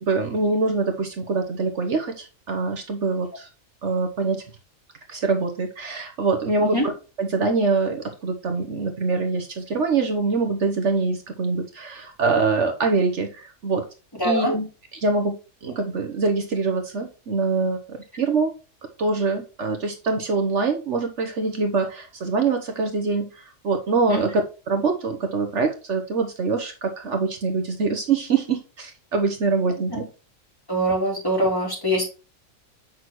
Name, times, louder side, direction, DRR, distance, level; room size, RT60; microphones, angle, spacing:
voice 1, 0.0-3.5 3.8-4.4 5.1-6.9 7.2-13.8 14.2-14.7 14.9-18.5 19.0-30.0, right 4 dB, 65° right, 5 dB, 1.3 m, -24 dB
voice 2, 14.2-14.5 24.1-24.2 30.7-32.0, equal, 15° left, -4 dB, 3.7 m, -23 dB
7.4 x 6.1 x 3.1 m, 0.32 s
omnidirectional pair, 1.4 m